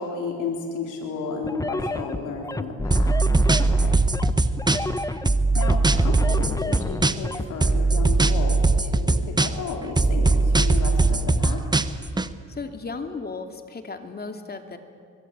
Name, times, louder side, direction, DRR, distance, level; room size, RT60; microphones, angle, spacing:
voice 1, 0.0-3.2 3.4-4.0 5.5-11.6, left 4 dB, 85° left, 1 dB, 3.9 m, -33 dB
sound 1, 1.4-7.5, left 2 dB, 10° left, 1.2 m, -29 dB
sound 2, 2.9-5.0 5.3-7.3 7.6-9.7 10.0-12.3, right 3 dB, 15° right, 1.1 m, -20 dB
voice 2, 12.5-14.8, left 4 dB, 30° left, 6 dB, 2.8 m, -35 dB
25.0 x 22.5 x 8.8 m, 2.1 s
cardioid pair, 90°, 30 cm